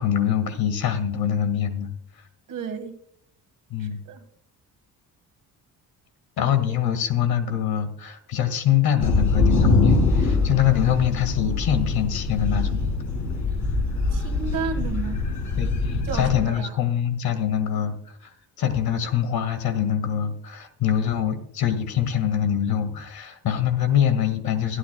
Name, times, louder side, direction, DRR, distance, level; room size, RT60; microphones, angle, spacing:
voice 1, 0.0-1.9 3.7-4.0 6.4-12.8 15.6-24.8, left 9 dB, 70° left, 1.9 m, -24 dB
voice 2, 2.5-3.0 3.8-4.2 14.1-15.2 16.0-16.7, right 6 dB, 60° right, 1.7 m, -32 dB
sound 1, 9.0-16.4, left 3 dB, 50° left, 4.7 m, -23 dB
23.0 x 9.7 x 2.2 m
cardioid pair, 105°, 37 cm